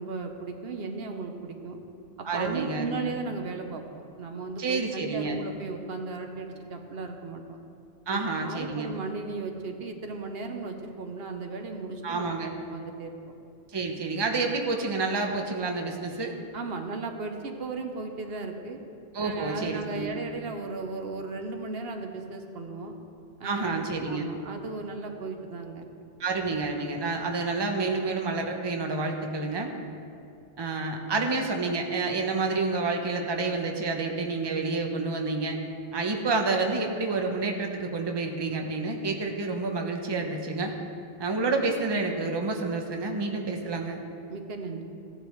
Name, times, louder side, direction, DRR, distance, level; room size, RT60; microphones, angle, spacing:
voice 1, 0.0-1.8 2.2-7.6 8.1-12.3 12.7-13.1 16.5-18.8 19.2-22.9 23.4-23.8 24.0-25.9 44.3-44.8, right 4 dB, 75° right, 4 dB, 1.1 m, -36 dB
voice 2, 2.2-3.1 4.6-5.4 8.1-8.9 12.0-12.5 13.7-16.3 19.1-20.1 23.4-24.3 26.2-29.7 30.6-35.6 35.9-40.7 41.2-44.0, right 3 dB, 25° right, 2 dB, 0.8 m, -29 dB
16.0 x 10.0 x 3.1 m, 2.6 s
omnidirectional pair, 1.0 m